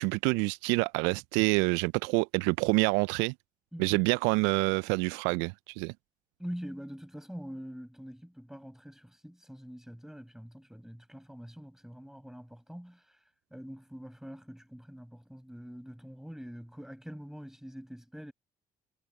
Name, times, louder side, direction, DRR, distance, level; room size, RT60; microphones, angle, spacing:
voice 1, 0.0-3.3 3.8-5.9, right 28 dB, 70° right, 0.7 m, -27 dB
voice 2, 3.7-4.1 6.4-13.2 13.5-18.3, equal, ahead, 6.9 m, -44 dB
figure-of-eight pair, 45°, 19 cm